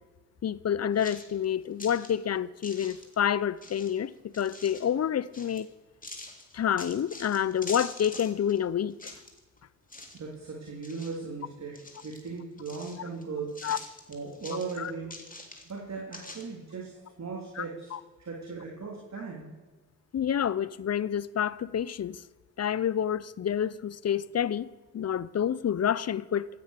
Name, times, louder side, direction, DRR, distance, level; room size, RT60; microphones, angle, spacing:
voice 1, 0.4-5.7 6.5-9.1 13.6-13.8 14.8-14.9 17.6-17.7 17.9-18.0 20.1-22.2 22.6-26.5, left 9 dB, 40° left, 0.7 m, -28 dB
sound 1, 1.0-2.1 2.6-3.2 3.6-4.9 5.3-5.6 6.0-8.6 8.9-9.6 9.9-10.3 10.6-11.4 11.7-13.2 13.5-15.8 16.1-16.4, left 2 dB, 20° left, 3.3 m, -45 dB
voice 2, 10.1-11.8 12.0-13.5 14.1-15.1 15.7-17.9 18.2-19.5, right 4 dB, 45° right, 3.3 m, -38 dB
16.0 x 9.2 x 6.7 m
hypercardioid pair, 45°, 38 cm